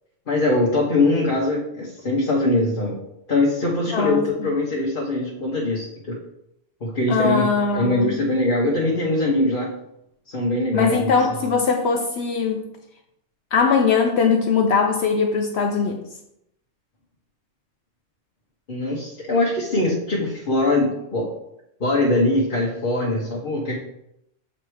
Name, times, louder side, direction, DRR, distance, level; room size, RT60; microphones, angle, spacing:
voice 1, 0.3-3.0 3.3-6.2 6.8-7.5 7.7-9.7 10.3-11.1 18.7-21.3 21.8-23.8, left 2 dB, 45° left, -5 dB, 1.2 m, -22 dB
voice 2, 3.9-4.2 7.1-8.1 10.7-12.7 13.5-16.0, left 5 dB, 65° left, 4 dB, 0.8 m, -20 dB
7.3 x 3.3 x 4.6 m, 0.80 s
omnidirectional pair, 1.3 m